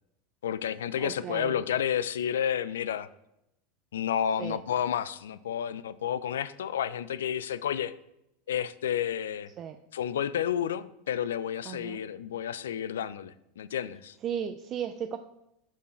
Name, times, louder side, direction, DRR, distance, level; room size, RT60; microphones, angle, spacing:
voice 1, 0.4-3.1 3.9-7.9 8.5-9.5 9.9-14.2, left 9 dB, 85° left, 16 dB, 0.4 m, -31 dB
voice 2, 1.0-1.6 4.4-4.6 9.6-9.8 11.7-12.0 14.2-15.2, right 8 dB, 40° right, 8 dB, 0.4 m, -35 dB
7.0 x 4.6 x 4.3 m, 0.84 s
hypercardioid pair, 100°, 0 cm